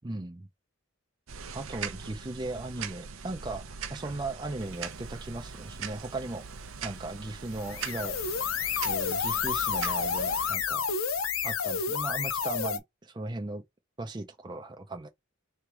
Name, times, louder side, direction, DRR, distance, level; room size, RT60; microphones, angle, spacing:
voice 1, 0.0-0.5 1.5-3.6 3.9-6.4 6.8-8.2 8.8-10.8 11.4-13.6 14.0-15.1, right 2 dB, 20° right, 0.5 m, -37 dB
sound 1, 1.3-10.5, right 6 dB, 80° right, 0.7 m, -41 dB
sound 2, 7.5-12.8, left 6 dB, 85° left, 0.7 m, -30 dB
3.6 x 3.1 x 4.7 m
head